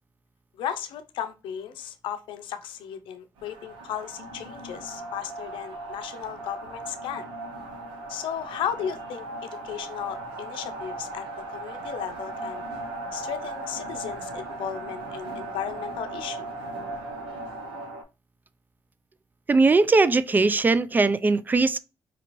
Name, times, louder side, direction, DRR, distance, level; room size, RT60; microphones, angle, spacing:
voice 1, 0.6-7.3 8.1-12.6 13.1-16.5, left 9 dB, 80° left, 0.5 m, -35 dB
sound 1, 3.4-18.0, right 2 dB, 85° right, 0.8 m, -37 dB
voice 2, 19.5-21.8, right 3 dB, 20° right, 0.3 m, -20 dB
4.4 x 2.5 x 3.0 m
cardioid pair, 75°, 8 cm